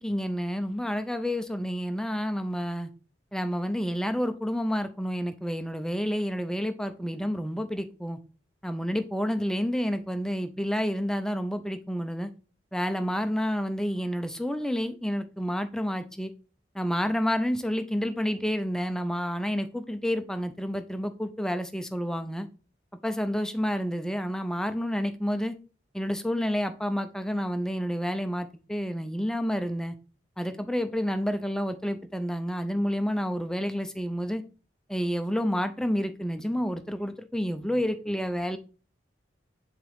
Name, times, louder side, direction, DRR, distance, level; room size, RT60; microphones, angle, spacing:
voice 1, 0.0-2.9 3.3-8.2 8.6-12.3 12.7-16.3 16.7-22.5 23.0-25.5 25.9-30.0 30.4-34.4 34.9-38.6, equal, 5° left, 0.4 m, -29 dB
7.3 x 3.7 x 3.5 m
head